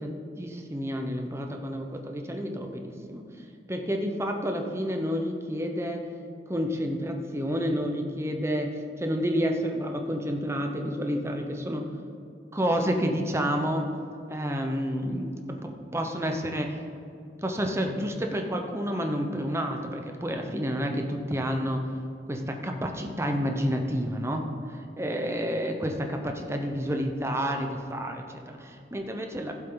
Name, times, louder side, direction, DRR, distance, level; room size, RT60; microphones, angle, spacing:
voice 1, 0.0-6.0 6.5-11.9 12.5-13.9 14.3-16.8 17.4-22.0 22.3-29.5, equal, 15° right, 3 dB, 0.9 m, -30 dB
16.0 x 7.5 x 3.9 m, 2.5 s
head